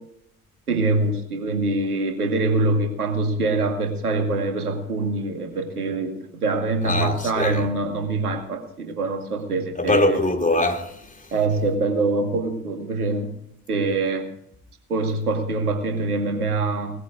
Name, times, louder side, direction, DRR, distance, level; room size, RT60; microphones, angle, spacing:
voice 1, 0.7-10.2 11.3-13.3 13.7-14.3 14.9-17.0, right 3 dB, 85° right, 2.3 m, -24 dB
voice 2, 6.8-7.7 9.7-11.3, left 2 dB, 15° left, 2.9 m, -23 dB
19.0 x 14.5 x 3.9 m
figure-of-eight pair, 55°, 44 cm